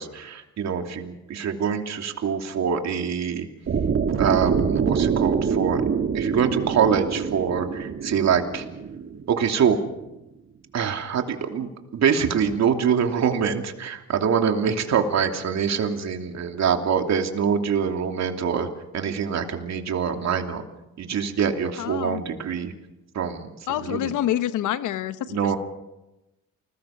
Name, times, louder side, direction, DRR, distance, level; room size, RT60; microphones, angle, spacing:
voice 1, 0.0-3.5 4.2-5.8 6.1-8.6 9.3-9.8 10.7-18.7 18.9-20.6 21.0-22.7 23.1-24.1 25.3-25.6, right 7 dB, 60° right, 4 dB, 3.0 m, -24 dB
sound 1, 3.7-9.8, right 6 dB, 45° right, 2.0 m, -25 dB
voice 2, 21.8-22.2 23.7-25.6, left 12 dB, 80° left, 12 dB, 1.1 m, -27 dB
29.5 x 20.5 x 5.9 m, 0.96 s
cardioid pair, 90°, 30 cm